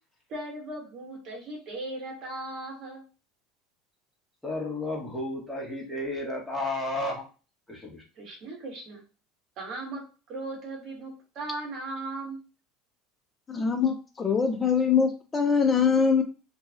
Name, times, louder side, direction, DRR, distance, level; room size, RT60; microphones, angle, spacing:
voice 1, 0.3-3.0 8.1-9.0 9.6-10.0 10.3-12.4, right 2 dB, 50° right, -1 dB, 1.5 m, -37 dB
voice 2, 4.4-7.2 7.7-8.0, left 2 dB, ahead, -4 dB, 1.4 m, -32 dB
voice 3, 13.5-16.2, left 6 dB, 25° left, 5 dB, 0.4 m, -23 dB
2.8 x 2.7 x 2.4 m, 0.35 s
hypercardioid pair, 90°, 0 cm